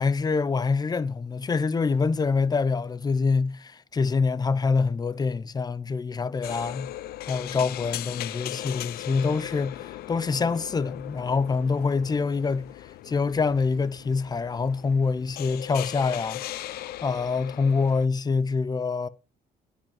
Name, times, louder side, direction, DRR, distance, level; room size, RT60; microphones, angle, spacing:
voice 1, 0.0-6.9 7.3-12.7 13.1-16.4 16.7-19.1, left 4 dB, 25° left, 0.7 m, -25 dB
sound 1, 6.4-18.1, left 14 dB, 65° left, 0.5 m, -38 dB
10.0 x 5.4 x 7.4 m
cardioid pair, 110°, 17 cm